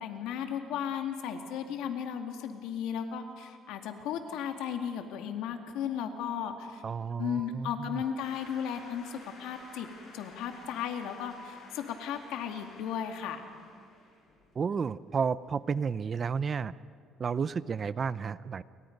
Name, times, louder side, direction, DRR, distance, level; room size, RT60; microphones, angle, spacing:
voice 1, 0.0-6.8 7.2-9.9 10.1-13.4, left 8 dB, 85° left, 5 dB, 2.3 m, -35 dB
voice 2, 6.8-8.0 14.5-16.7 17.2-18.6, right 6 dB, 30° right, 17 dB, 0.5 m, -32 dB
sound 1, 8.2-15.0, left 2 dB, 45° left, 7.3 m, -53 dB
29.5 x 23.5 x 5.4 m, 2.2 s
cardioid pair, 150°, 0 cm